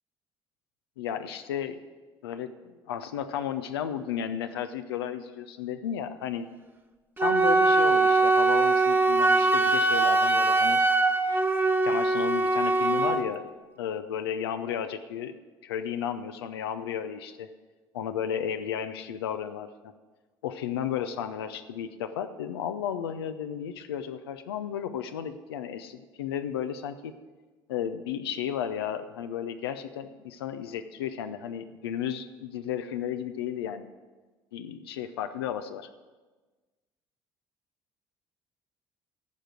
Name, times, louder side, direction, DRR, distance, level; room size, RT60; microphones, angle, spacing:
voice 1, 1.0-1.8 2.2-6.5 7.2-10.8 11.8-13.5 13.8-15.4 15.6-17.5 17.9-19.9 20.4-27.1 27.7-33.9 34.5-35.9, left 9 dB, 85° left, 9 dB, 0.5 m, -33 dB
Wind instrument woodwind instrument, 7.2-13.2, right 3 dB, 15° right, 0.9 m, -22 dB
13.5 x 5.1 x 7.8 m, 1.3 s
hypercardioid pair, 55°, 13 cm